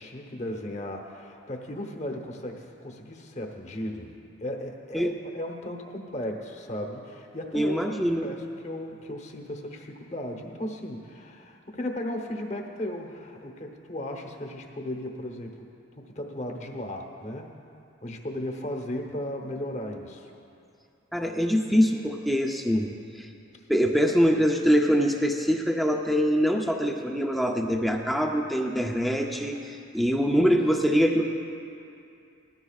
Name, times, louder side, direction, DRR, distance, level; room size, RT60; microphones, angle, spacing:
voice 1, 0.0-7.8 8.2-15.7 16.0-17.5 18.0-20.3, left 1 dB, 35° left, 2 dB, 1.0 m, -36 dB
voice 2, 7.5-8.3 21.1-22.9 23.2-23.3 23.7-31.2, equal, ahead, 2 dB, 0.5 m, -24 dB
19.0 x 13.5 x 2.4 m, 2.6 s
head